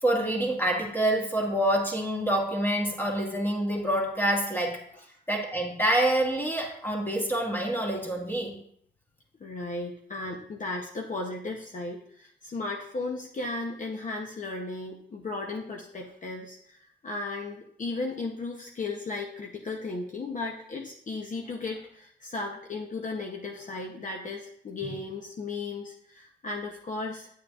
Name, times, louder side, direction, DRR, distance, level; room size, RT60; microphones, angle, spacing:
voice 1, 0.0-4.8 5.3-8.6, right 1 dB, 10° left, -1 dB, 1.7 m, -27 dB
voice 2, 9.4-27.3, left 3 dB, 45° left, 1 dB, 0.8 m, -35 dB
9.4 x 7.3 x 2.4 m, 0.68 s
cardioid pair, 105°, 19 cm